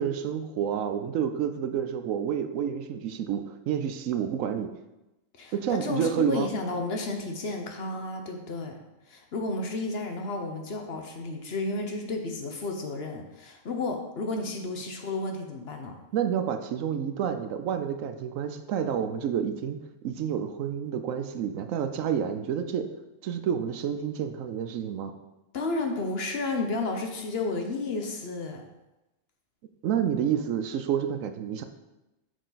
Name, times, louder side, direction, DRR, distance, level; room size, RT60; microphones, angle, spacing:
voice 1, 0.0-4.7 5.5-6.5 16.1-22.9 23.2-25.1 29.8-31.6, right 8 dB, 80° right, 8 dB, 1.0 m, -29 dB
voice 2, 5.4-8.8 9.1-15.9 25.5-28.6, left 2 dB, 55° left, 3 dB, 0.9 m, -32 dB
6.5 x 4.8 x 4.0 m, 0.98 s
omnidirectional pair, 1.4 m